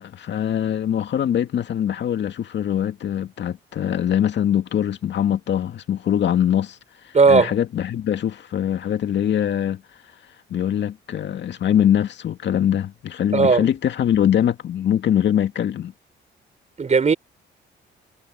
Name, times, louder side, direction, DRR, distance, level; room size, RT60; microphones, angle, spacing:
voice 1, 0.0-6.8 7.0-9.8 10.5-15.9, left 10 dB, 65° left, 2.2 m, -22 dB
voice 2, 7.1-7.5 13.3-13.6 16.8-17.1, right 4 dB, 35° right, 4.3 m, -16 dB
cardioid pair, 90°, 20 cm